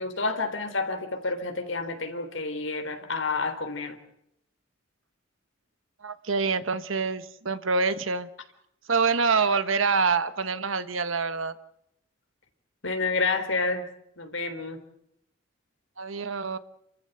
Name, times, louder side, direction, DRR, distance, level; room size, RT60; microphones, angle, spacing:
voice 1, 0.0-4.0 12.8-13.8 14.2-14.8, left 3 dB, 75° left, 7 dB, 3.6 m, -29 dB
voice 2, 6.0-8.3 8.9-11.5 16.0-16.6, right 4 dB, 90° right, 13 dB, 1.4 m, -26 dB
29.0 x 14.5 x 8.0 m, 0.78 s
head